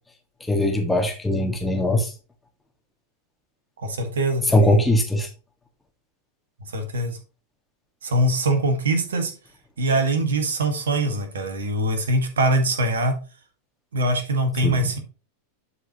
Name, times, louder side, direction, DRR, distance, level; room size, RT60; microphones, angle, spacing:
voice 1, 0.5-2.1 4.5-5.3 14.6-14.9, left 1 dB, 10° left, 2 dB, 1.8 m, -20 dB
voice 2, 3.8-4.8 6.6-7.2 8.0-9.3 9.8-13.2 13.9-15.0, right 1 dB, 65° right, 6 dB, 1.7 m, -23 dB
11.0 x 4.8 x 3.0 m, 0.34 s
figure-of-eight pair, 90°, 0 cm